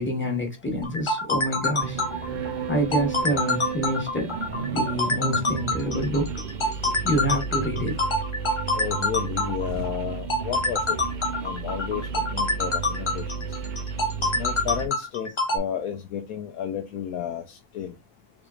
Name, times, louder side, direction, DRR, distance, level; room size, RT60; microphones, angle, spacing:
voice 1, 0.0-2.0 2.7-4.4 4.7-6.3 7.0-8.0, equal, 10° left, 1.1 m, -27 dB
sound 1, 0.8-15.6, left 2 dB, 40° left, 0.4 m, -26 dB
sound 2, 1.8-14.9, right 6 dB, 70° right, 0.4 m, -33 dB
voice 2, 8.7-11.0 11.4-13.5 14.4-17.9, left 9 dB, 90° left, 1.0 m, -32 dB
3.6 x 3.5 x 2.3 m
omnidirectional pair, 1.5 m